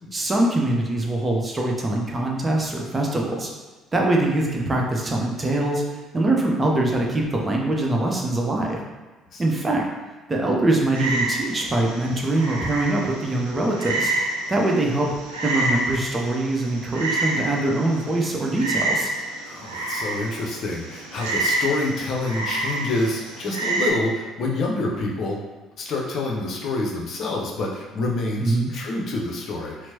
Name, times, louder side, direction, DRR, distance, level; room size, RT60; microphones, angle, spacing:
voice 1, 0.1-3.5 3.9-5.8 6.1-8.8 9.4-9.9 10.3-14.1 14.5-15.1 15.4-19.1 28.4-28.7, right 2 dB, 25° right, -1 dB, 0.7 m, -23 dB
Frog, 10.9-23.9, right 2 dB, 80° right, 0.4 m, -28 dB
voice 2, 19.5-25.4 25.8-29.9, left 2 dB, 50° left, -1 dB, 0.6 m, -27 dB
4.4 x 2.0 x 2.8 m, 1.2 s
figure-of-eight pair, 50°, 0 cm